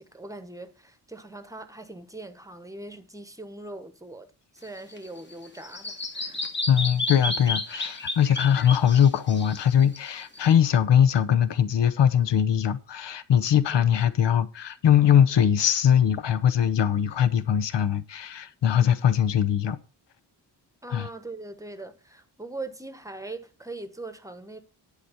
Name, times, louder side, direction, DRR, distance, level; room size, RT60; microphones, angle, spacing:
voice 1, 0.0-4.3 4.5-6.4 13.7-13.9 20.8-24.6, right 2 dB, 10° right, 1.1 m, -41 dB
Bird vocalization bird call bird song, 4.6-10.5, left 2 dB, 25° left, 1.4 m, -32 dB
voice 2, 6.7-19.8 20.9-21.1, left 9 dB, 80° left, 0.9 m, -21 dB
11.0 x 4.9 x 7.0 m
wide cardioid pair, 150°, 42 cm